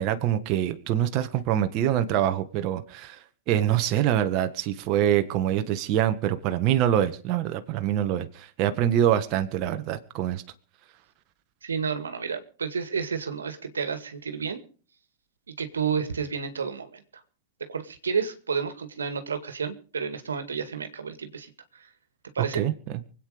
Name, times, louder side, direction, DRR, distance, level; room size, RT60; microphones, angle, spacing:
voice 1, 0.0-10.4 22.5-23.0, right 11 dB, 45° right, 8 dB, 1.5 m, -25 dB
voice 2, 11.6-14.6 15.6-17.0 17.7-21.5 22.4-22.6, right 6 dB, 85° right, 9 dB, 1.9 m, -30 dB
24.5 x 9.0 x 5.0 m, 0.41 s
hypercardioid pair, 105°, 0 cm